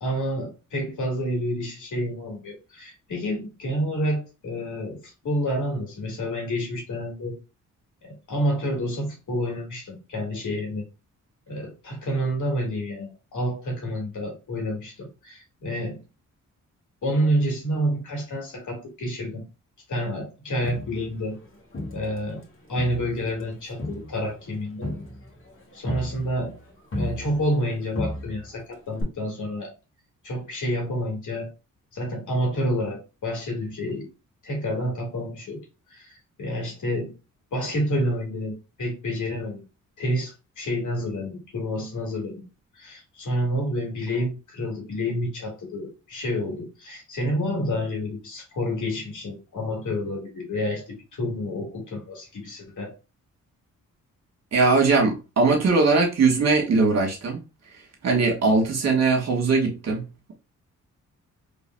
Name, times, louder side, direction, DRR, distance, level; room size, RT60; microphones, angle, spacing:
voice 1, 0.0-7.4 8.0-10.8 11.5-16.0 17.0-19.4 19.9-21.4 21.9-22.4 22.7-24.9 25.7-26.6 26.9-29.7 30.2-31.5 31.9-34.1 34.4-35.6 35.9-37.1 37.5-39.6 40.0-42.4 42.7-52.9, equal, 65° left, 2.2 m, -29 dB
Crowd, 20.6-22.4 22.8-27.7 27.9-28.6 29.0-29.1, left 1 dB, 40° left, 1.9 m, -35 dB
voice 2, 54.5-57.4 58.0-60.0, right 4 dB, 55° right, 1.5 m, -20 dB
3.8 x 3.3 x 2.2 m
cardioid pair, 60°, 32 cm